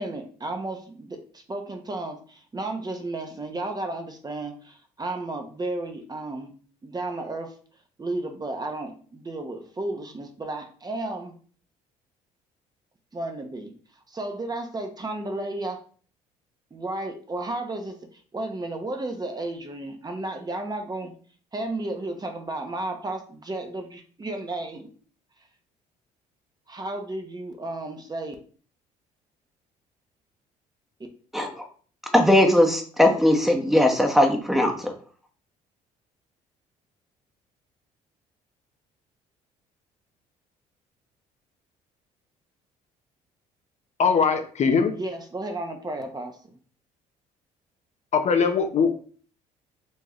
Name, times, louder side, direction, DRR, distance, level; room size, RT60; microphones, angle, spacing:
voice 1, 0.0-6.5 6.8-7.5 8.0-11.3 13.1-13.7 14.1-15.8 16.7-18.0 18.3-21.1 21.5-24.9 26.7-28.3 44.9-46.5, right 2 dB, 25° right, 5 dB, 0.9 m, -33 dB
voice 2, 31.3-31.6 32.1-34.9, left 1 dB, ahead, 3 dB, 1.0 m, -19 dB
voice 3, 44.0-44.9 48.1-48.9, left 5 dB, 45° left, 6 dB, 0.7 m, -21 dB
4.5 x 3.0 x 2.9 m, 0.42 s
supercardioid pair, 70°, 16 cm